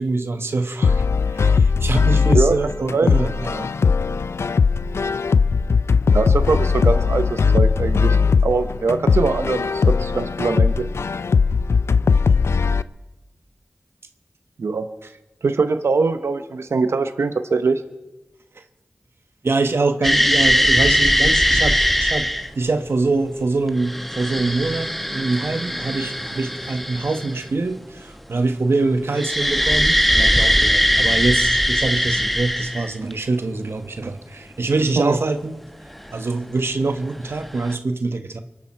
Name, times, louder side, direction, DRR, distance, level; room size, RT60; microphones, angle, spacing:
voice 1, 0.0-3.7 18.5-18.6 19.4-22.3 22.5-35.6 36.1-38.4, right 3 dB, 70° right, 7 dB, 1.3 m, -24 dB
sound 1, 0.8-12.8, left 5 dB, 80° left, 0.4 m, -19 dB
voice 2, 2.9-3.3 6.1-8.2 8.4-10.9 14.6-14.9 15.4-17.8 35.0-35.2, right 4 dB, 85° right, 9 dB, 0.9 m, -22 dB
sound 2, 20.0-22.5 23.7-27.5 29.2-33.1 36.1-36.2 37.4-37.8, equal, 5° left, 1.1 m, -20 dB
24.0 x 11.5 x 4.5 m, 1.0 s
cardioid pair, 45°, 4 cm